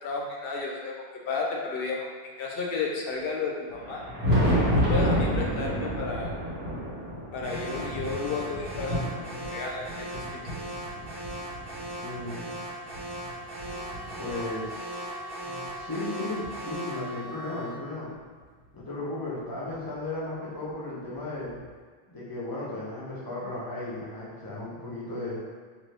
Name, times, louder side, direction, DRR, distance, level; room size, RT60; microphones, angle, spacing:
voice 1, 0.0-2.1 2.4-4.0 4.7-6.3 7.3-10.1, left 4 dB, 65° left, -2 dB, 0.7 m, -32 dB
Thunder, 3.7-12.3 12.9-14.6 15.8-15.9 16.4-16.5 18.4-18.5 19.8-19.9 21.5-21.6, equal, 70° right, 1.3 m, -30 dB
Alarm, 7.4-17.1, right 1 dB, 5° right, 0.8 m, -39 dB
voice 2, 12.0-12.7 14.2-15.0 15.4-18.1 18.7-21.6 22.1-25.4, left 2 dB, 25° left, -7 dB, 0.6 m, -35 dB
sound 1, 13.6-17.8, equal, 40° right, 0.7 m, -43 dB
2.6 x 2.5 x 3.3 m, 1.5 s
omnidirectional pair, 1.1 m